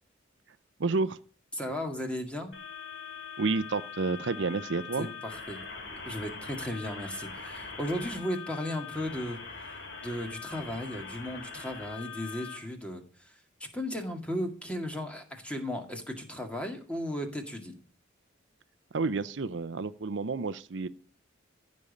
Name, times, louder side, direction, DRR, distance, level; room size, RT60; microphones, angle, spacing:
voice 1, 0.8-1.2 3.4-5.1 18.9-20.9, right 3 dB, 70° right, 13 dB, 0.6 m, -30 dB
voice 2, 1.5-2.5 5.0-5.6 6.0-9.7 10.0-13.3 13.6-17.8, left 1 dB, 5° left, 3 dB, 2.0 m, -35 dB
sound 1, 2.5-12.6, left 5 dB, 70° left, 3.4 m, -42 dB
15.0 x 5.4 x 8.5 m, 0.41 s
head